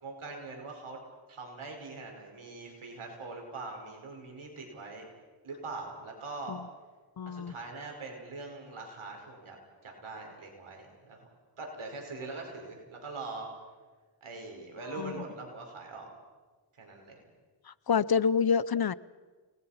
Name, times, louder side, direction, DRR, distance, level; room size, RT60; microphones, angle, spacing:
voice 1, 0.0-1.0 1.3-5.1 5.4-6.6 7.3-9.6 9.8-11.3 11.6-13.5 14.2-16.1 16.7-17.2, right 3 dB, 90° right, 1 dB, 5.1 m, -42 dB
voice 2, 7.2-7.5 15.0-15.2 17.7-18.9, left 6 dB, 50° left, 20 dB, 0.7 m, -27 dB
29.5 x 20.0 x 5.8 m, 1.4 s
cardioid pair, 50°, 48 cm